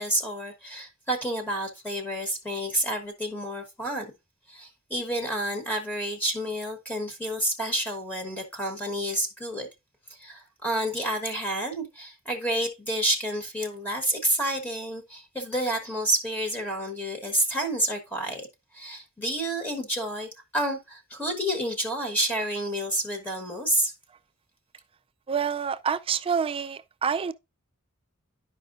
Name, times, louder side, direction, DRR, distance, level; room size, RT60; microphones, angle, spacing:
voice 1, 0.0-4.1 4.5-9.7 10.1-18.5 18.7-23.9, right 1 dB, 10° left, 1.2 m, -29 dB
voice 2, 25.3-27.3, right 7 dB, 25° right, 0.3 m, -27 dB
11.5 x 5.0 x 2.5 m
head